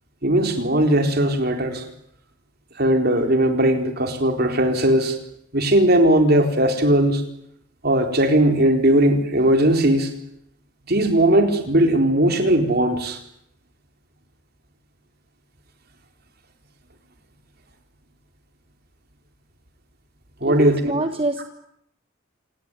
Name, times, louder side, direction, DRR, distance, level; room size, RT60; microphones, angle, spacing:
voice 1, 0.2-1.9 2.8-5.2 5.5-7.2 7.8-10.1 10.9-13.2 20.4-20.9, right 1 dB, 55° right, 5 dB, 4.3 m, -18 dB
voice 2, 20.5-21.4, right 2 dB, 30° right, 7 dB, 1.3 m, -25 dB
28.5 x 18.0 x 10.0 m, 0.74 s
head